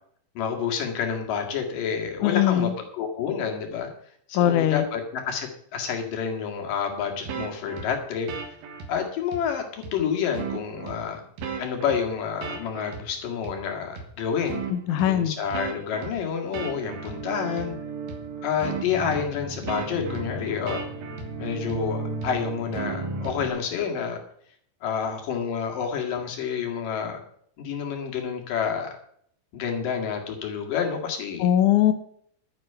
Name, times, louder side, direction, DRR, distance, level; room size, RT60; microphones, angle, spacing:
voice 1, 0.4-3.9 4.3-8.3 8.9-11.2 11.6-14.6 15.1-17.7 18.4-20.8 21.4-24.2 24.8-27.2 27.6-28.9 29.5-31.5, left 7 dB, 60° left, 3 dB, 3.5 m, -29 dB
voice 2, 2.2-2.7 4.3-4.8 14.7-15.3 31.4-31.9, left 11 dB, 75° left, 9 dB, 1.8 m, -21 dB
sound 1, 7.2-8.9 9.3-9.4 9.8-9.9 10.3-11.0 11.4-13.1 13.4-13.5 14.0-14.1 14.5-15.1 15.5-23.5, right 4 dB, 70° right, 3.4 m, -34 dB
11.5 x 10.5 x 5.6 m, 0.65 s
omnidirectional pair, 4.6 m